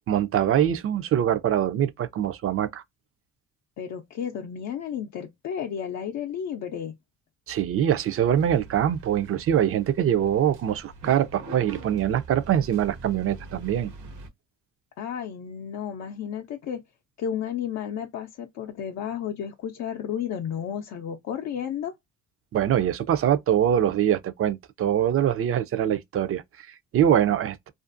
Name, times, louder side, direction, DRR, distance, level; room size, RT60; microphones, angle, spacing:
voice 1, 0.1-2.8 7.5-13.9 22.5-27.7, right 10 dB, 50° right, 0.4 m, -23 dB
voice 2, 3.8-6.9 15.0-16.8 17.2-21.9, left 8 dB, 60° left, 0.5 m, -32 dB
sound 1, 8.2-14.3, right 3 dB, 75° right, 0.8 m, -44 dB
2.5 x 2.4 x 2.4 m
cardioid pair, 90°, 30 cm